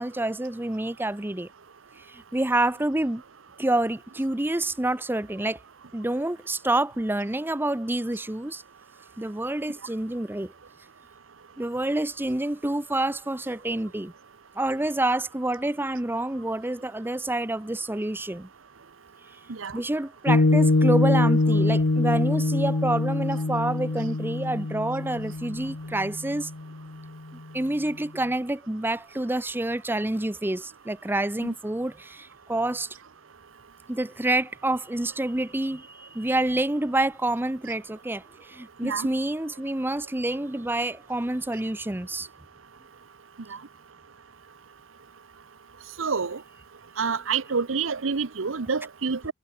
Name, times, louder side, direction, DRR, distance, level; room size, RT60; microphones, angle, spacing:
voice 1, 0.0-1.5 2.0-3.2 3.6-5.6 5.9-8.6 9.2-10.5 11.6-14.1 14.6-18.5 19.7-26.5 27.5-32.9 33.9-42.3, right 1 dB, 10° right, 0.7 m, -28 dB
voice 2, 19.5-19.8 31.4-31.5 38.8-39.1 46.0-46.4 47.0-49.3, right 5 dB, 85° right, 0.9 m, -28 dB
Piano, 20.3-26.9, left 2 dB, 75° left, 1.0 m, -24 dB
head